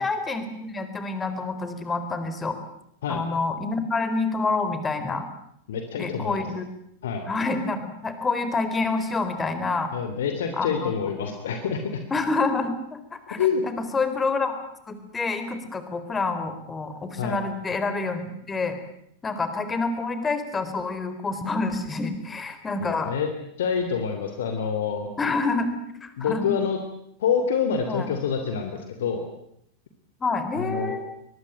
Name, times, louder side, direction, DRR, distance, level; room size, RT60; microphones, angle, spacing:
voice 1, 0.0-2.6 3.1-5.2 6.0-6.6 7.3-9.9 10.5-10.9 12.1-13.4 13.6-14.6 14.8-18.8 19.2-23.1 25.2-26.5 27.9-28.1 30.2-31.1, left 3 dB, 15° left, 10 dB, 4.1 m, -27 dB
voice 2, 5.7-6.5 7.0-7.2 9.9-12.0 13.3-13.6 17.2-17.4 22.8-23.3 23.6-25.1 26.2-26.8 27.2-29.3 30.6-30.9, left 6 dB, 60° left, 6 dB, 3.0 m, -27 dB
24.5 x 21.0 x 9.0 m, 0.74 s
figure-of-eight pair, 90°, 0 cm